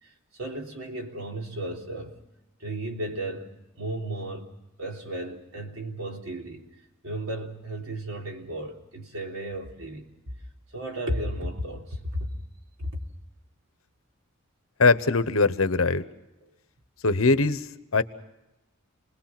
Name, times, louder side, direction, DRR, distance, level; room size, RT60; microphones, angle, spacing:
voice 1, 0.0-2.2 2.6-4.5 4.8-6.7 7.0-10.1 10.7-12.3 12.8-13.0, right 1 dB, 90° right, 3.5 m, -34 dB
voice 2, 14.8-16.0 17.0-17.7 17.9-18.0, left 3 dB, 75° left, 1.1 m, -21 dB
29.5 x 20.5 x 6.0 m
head